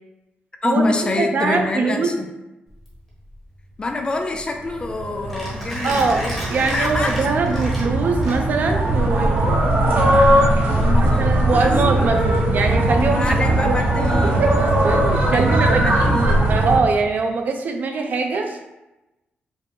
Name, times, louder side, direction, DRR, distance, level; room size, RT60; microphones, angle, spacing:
voice 1, 0.6-2.3 3.8-6.4 6.7-7.2 10.6-12.2 13.0-14.4 15.3-16.5, left 2 dB, 25° left, 4 dB, 0.3 m, -26 dB
voice 2, 1.2-2.1 5.8-9.6 11.0-13.8 14.4-14.5 14.8-15.9 16.1-18.6, right 4 dB, 50° right, 4 dB, 0.4 m, -22 dB
Mechanisms, 2.7-8.8, equal, ahead, 1.1 m, -33 dB
sound 1, 4.7-16.8, right 1 dB, 85° right, 0.8 m, -19 dB
4.9 x 2.0 x 3.6 m, 1.0 s
wide cardioid pair, 170°, 4 cm